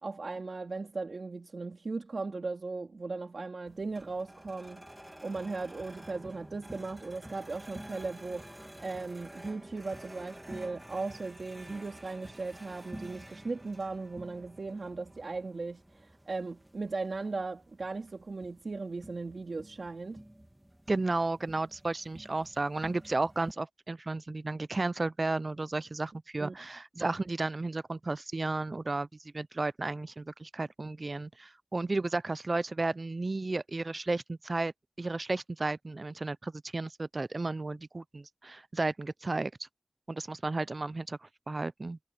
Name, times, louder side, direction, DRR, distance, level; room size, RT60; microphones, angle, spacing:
voice 1, 0.0-4.8 5.2-20.2 26.4-26.6, right 3 dB, 90° right, 2.7 m, -37 dB
sound 1, 3.7-23.5, right 1 dB, 20° right, 2.3 m, -50 dB
voice 2, 20.9-29.1 29.3-34.7 35.0-39.7 40.1-42.0, right 2 dB, 60° right, 0.4 m, -33 dB
wide cardioid pair, 40°, 0 cm